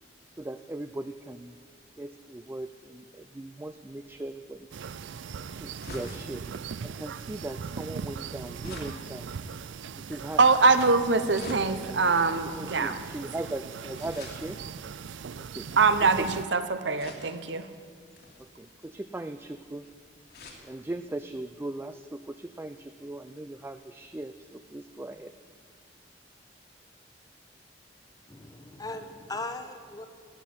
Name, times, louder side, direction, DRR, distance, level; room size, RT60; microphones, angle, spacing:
voice 1, 0.4-1.5 2.0-4.7 5.6-6.4 6.8-9.3 9.9-10.4 12.5-14.6 15.4-15.7 16.0-16.3 18.4-19.9 20.6-25.3, right 2 dB, 10° right, 8 dB, 0.3 m, -39 dB
sound 1, 3.6-16.3 17.0-17.6 18.1-20.7 21.1-21.2 21.4-21.5, left 2 dB, 60° left, 2.3 m, -48 dB
sound 2, 4.7-16.5, right 6 dB, 85° right, 0.4 m, -40 dB
voice 2, 10.4-13.0 15.8-17.7, right 4 dB, 70° right, 10 dB, 0.9 m, -23 dB
voice 3, 28.3-30.1, left 2 dB, 20° left, 8 dB, 1.0 m, -38 dB
13.0 x 8.6 x 9.5 m, 2.2 s
head